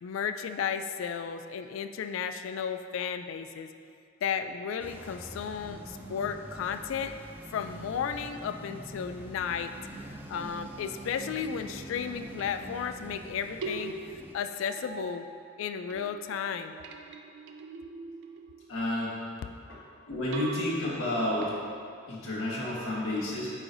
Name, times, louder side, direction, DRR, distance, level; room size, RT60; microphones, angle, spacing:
voice 1, 0.0-3.7 4.2-7.1 7.5-9.7 10.3-15.3 15.6-16.8, left 7 dB, 70° left, 9 dB, 0.3 m, -34 dB
sound 1, 4.8-14.3, right 1 dB, 10° right, 0.4 m, -45 dB
sound 2, 12.2-13.2 13.6-15.6 15.9-18.9 20.3-22.0, right 3 dB, 65° right, 0.4 m, -41 dB
voice 2, 18.7-19.2 20.1-21.5 22.1-23.5, left 1 dB, 85° left, -6 dB, 1.4 m, -30 dB
8.5 x 4.8 x 2.6 m, 2.4 s
head